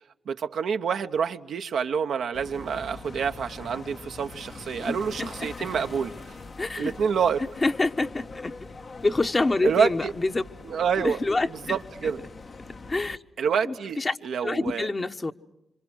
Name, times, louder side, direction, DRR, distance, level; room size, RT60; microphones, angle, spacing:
voice 1, 0.3-6.4 6.8-7.4 9.6-10.1 10.6-11.2 11.5-12.2 13.4-14.9, right 6 dB, 80° right, 0.9 m, -27 dB
sound 1, 2.3-13.2, left 3 dB, 60° left, 1.2 m, -43 dB
voice 2, 4.8-5.5 6.6-6.9 7.6-8.5 9.0-10.4 11.0-11.7 12.9-13.2 13.6-14.2 14.4-15.3, left 2 dB, 40° left, 1.2 m, -26 dB
27.0 x 26.0 x 6.3 m
supercardioid pair, 40°, 0 cm